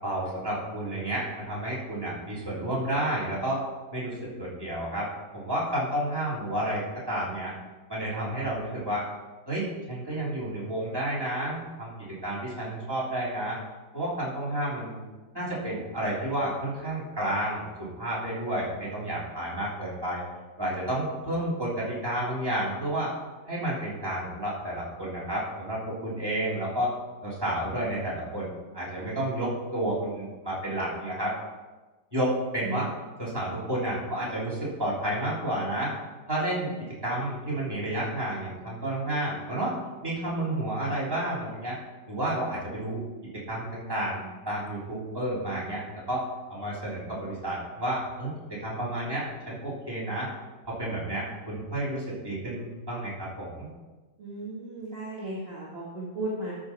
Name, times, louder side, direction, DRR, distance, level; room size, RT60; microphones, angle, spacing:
voice 1, 0.0-3.6 3.9-5.1 5.3-7.5 7.9-9.0 9.5-13.6 13.9-15.0 15.3-20.2 20.6-23.1 23.5-26.9 27.2-31.3 32.1-32.8 33.2-35.9 36.3-36.7 37.0-39.8 40.0-41.8 42.1-43.0 43.5-50.3 50.6-53.7, right 1 dB, 15° right, -7 dB, 3.4 m, -31 dB
voice 2, 54.2-56.5, right 2 dB, 35° right, -7 dB, 2.2 m, -35 dB
13.0 x 6.5 x 4.6 m, 1.2 s
omnidirectional pair, 1.8 m